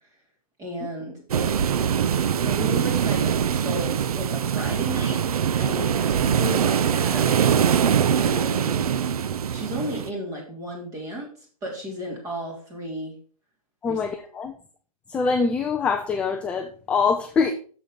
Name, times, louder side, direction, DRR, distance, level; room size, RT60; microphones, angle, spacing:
voice 1, 0.6-1.6 2.4-5.3 5.6-8.8 9.5-11.3 11.6-13.1 13.8-14.0, right 1 dB, 20° right, -1 dB, 3.2 m, -34 dB
sound 1, 1.3-10.1, right 8 dB, 75° right, 0.6 m, -23 dB
voice 2, 13.8-14.5 15.1-17.5, left 5 dB, 5° left, 5 dB, 0.3 m, -24 dB
7.2 x 6.4 x 5.0 m, 0.41 s
hypercardioid pair, 145°, 19 cm